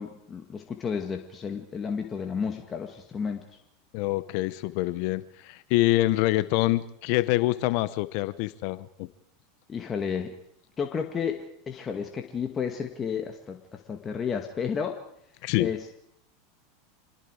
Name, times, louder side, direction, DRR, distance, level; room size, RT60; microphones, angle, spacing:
voice 1, 0.0-3.4 9.7-10.3 10.8-15.0 15.6-16.0, left 6 dB, 25° left, 4 dB, 2.1 m, -32 dB
voice 2, 3.9-9.1 15.4-15.7, left 17 dB, 60° left, 16 dB, 1.0 m, -26 dB
27.0 x 20.5 x 4.9 m, 0.75 s
hypercardioid pair, 95°, 0 cm